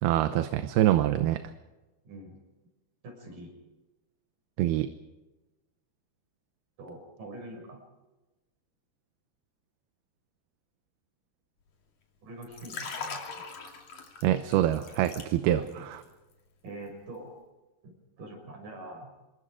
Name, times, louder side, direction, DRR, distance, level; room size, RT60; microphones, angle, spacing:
voice 1, 0.0-1.4 4.6-4.9 14.2-15.6, right 13 dB, 75° right, 9 dB, 2.8 m, -25 dB
voice 2, 2.0-2.4 3.0-3.5 6.8-7.8 12.2-13.2 15.4-15.9 16.6-17.3 17.8-19.1, right 1 dB, 55° right, 3 dB, 7.7 m, -44 dB
Liquid, 12.4-15.7 16.0-16.3, left 5 dB, 50° left, 3.9 m, -41 dB
26.5 x 23.0 x 5.0 m, 1.1 s
omnidirectional pair, 4.6 m